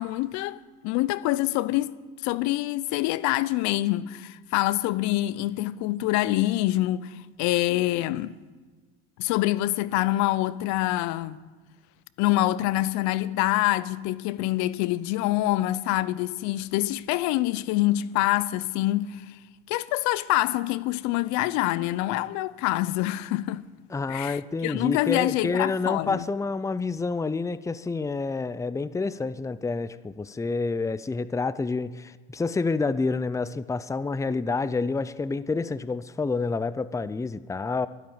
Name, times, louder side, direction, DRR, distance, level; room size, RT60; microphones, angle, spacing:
voice 1, 0.0-2.0 2.2-8.3 9.2-11.4 12.2-19.3 19.7-23.6 24.1-26.2, left 16 dB, 65° left, 0.7 m, -26 dB
voice 2, 23.9-37.9, left 4 dB, 10° left, 0.6 m, -28 dB
12.5 x 11.5 x 8.9 m
hypercardioid pair, 75°, 31 cm